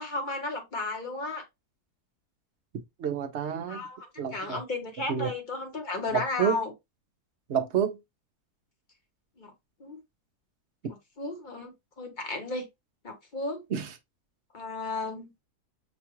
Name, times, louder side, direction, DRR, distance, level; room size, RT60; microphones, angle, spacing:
voice 1, 0.0-1.4 3.7-6.7 9.4-9.5 9.8-10.0 11.2-12.7 13.0-13.6 14.5-15.3, left 3 dB, 35° left, 1.0 m, -34 dB
voice 2, 3.0-3.9 4.2-4.6 5.1-5.3 6.1-6.6 7.5-8.0 13.7-13.9, right 8 dB, 55° right, 0.8 m, -29 dB
6.0 x 2.3 x 2.9 m
omnidirectional pair, 1.6 m